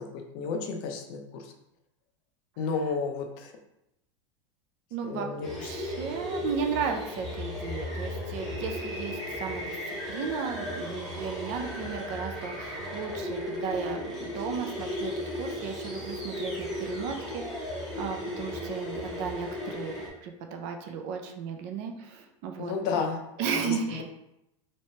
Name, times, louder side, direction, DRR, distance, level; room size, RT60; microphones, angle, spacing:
voice 1, 0.0-1.5 2.6-3.5 5.0-5.7 22.6-23.2 23.6-24.0, left 5 dB, 45° left, 4 dB, 0.5 m, -32 dB
voice 2, 4.9-5.3 5.6-9.8 10.0-22.7 23.4-24.0, right 6 dB, 40° right, 4 dB, 0.4 m, -35 dB
sound 1, 5.4-20.1, left 1 dB, ahead, 0.8 m, -35 dB
3.1 x 3.1 x 2.7 m, 0.84 s
supercardioid pair, 155°, 16 cm